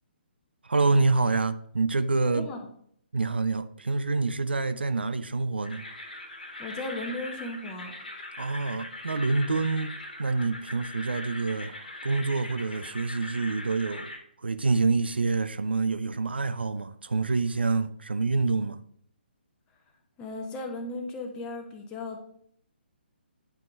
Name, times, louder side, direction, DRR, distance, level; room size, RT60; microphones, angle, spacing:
voice 1, 0.6-2.5 3.1-5.9 8.4-11.8 12.0-14.1 14.4-18.8, right 3 dB, 65° right, 0.4 m, -27 dB
voice 2, 2.3-2.7 6.6-7.9 20.2-22.2, left 2 dB, 15° left, 0.8 m, -36 dB
sound 1, 5.6-14.2, left 2 dB, 50° left, 1.4 m, -41 dB
9.0 x 3.8 x 3.5 m
figure-of-eight pair, 135°, 6 cm